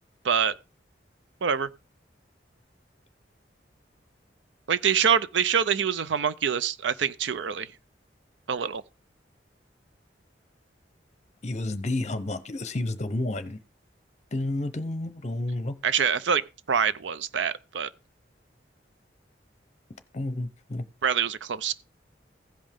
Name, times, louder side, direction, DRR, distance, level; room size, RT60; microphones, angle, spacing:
voice 1, 4.7-7.7 8.5-8.8 15.8-17.9 21.0-21.7, right 7 dB, 80° right, 0.5 m, -25 dB
voice 2, 11.4-13.6 14.3-15.8 20.1-20.8, left 2 dB, 40° left, 0.8 m, -30 dB
16.0 x 5.3 x 3.6 m
head